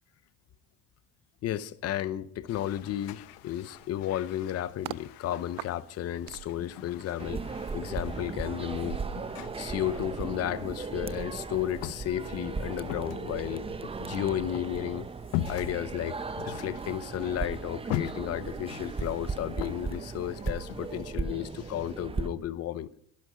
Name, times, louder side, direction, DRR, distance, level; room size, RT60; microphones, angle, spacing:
voice 1, 1.4-9.0 9.6-13.6 14.0-15.1 15.5-22.9, left 12 dB, 45° left, 0.8 m, -33 dB
sound 1, 2.5-21.1, left 13 dB, 80° left, 1.0 m, -42 dB
sound 2, 3.8-5.1 5.6-11.2 11.5-11.7, right 16 dB, 70° right, 0.6 m, -45 dB
sound 3, 7.2-22.3, right 4 dB, 15° right, 0.8 m, -37 dB
17.0 x 11.5 x 5.0 m
cardioid pair, 120°, 34 cm